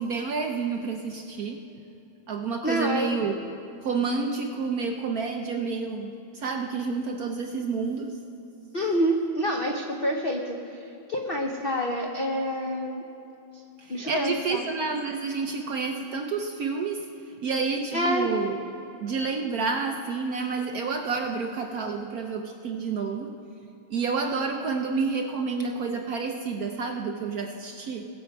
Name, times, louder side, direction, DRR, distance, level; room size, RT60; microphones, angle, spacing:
voice 1, 0.0-1.6 2.3-3.4 3.8-8.2 13.8-18.6 19.0-23.3 23.9-28.1, right 4 dB, 65° right, 3 dB, 0.9 m, -29 dB
voice 2, 2.6-3.1 8.7-13.0 13.5-13.6 13.9-14.6 17.9-18.3, equal, 70° left, 1 dB, 0.5 m, -27 dB
20.5 x 7.5 x 5.3 m, 2.8 s
omnidirectional pair, 2.2 m